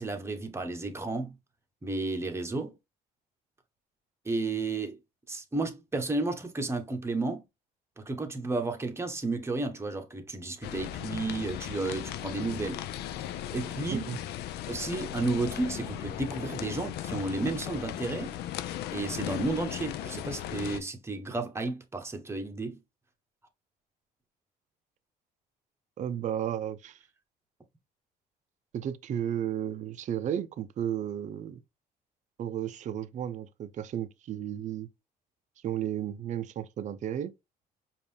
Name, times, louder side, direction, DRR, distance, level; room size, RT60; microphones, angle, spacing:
voice 1, 0.0-1.4 1.8-2.8 4.2-5.0 5.3-7.4 8.0-12.8 13.5-14.1 14.7-18.4 18.9-22.8, right 3 dB, 15° right, 0.9 m, -32 dB
sound 1, 10.6-20.8, left 12 dB, 75° left, 0.4 m, -37 dB
voice 2, 26.0-27.0 28.7-31.6 32.4-34.9 35.6-37.3, right 10 dB, 45° right, 0.5 m, -33 dB
5.1 x 2.5 x 3.3 m
cardioid pair, 110°, 17 cm